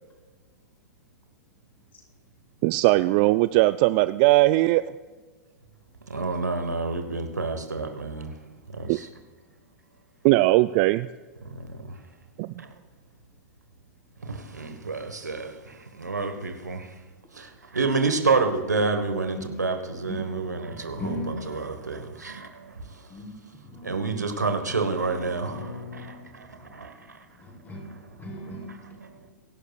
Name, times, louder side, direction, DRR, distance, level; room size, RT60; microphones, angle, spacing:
voice 1, 2.6-4.8 8.9-9.0 10.2-11.1 12.4-12.5, right 19 dB, 40° right, 0.3 m, -19 dB
voice 2, 6.1-8.3 8.7-9.1 11.5-11.7 12.6-12.7 14.2-16.9 17.3-22.6 23.8-26.9, right 4 dB, 85° right, 1.4 m, -29 dB
voice 3, 19.3-21.5 23.1-23.3 23.6-24.7 25.4-26.6 27.4-29.3, left 1 dB, 20° left, 4.8 m, -39 dB
23.5 x 11.5 x 2.4 m
figure-of-eight pair, 105°, 9 cm